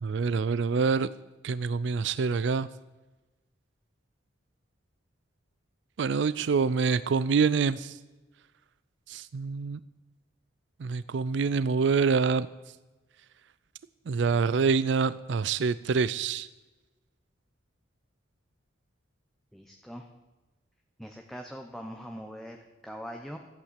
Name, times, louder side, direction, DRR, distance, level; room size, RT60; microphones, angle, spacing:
voice 1, 0.0-1.1 1.4-2.7 6.0-8.0 9.1-9.8 10.8-12.5 14.1-16.5, right 5 dB, 70° right, 16 dB, 0.4 m, -26 dB
voice 2, 19.5-20.1 21.0-23.4, equal, ahead, 3 dB, 0.9 m, -42 dB
14.0 x 8.8 x 8.1 m, 1.1 s
head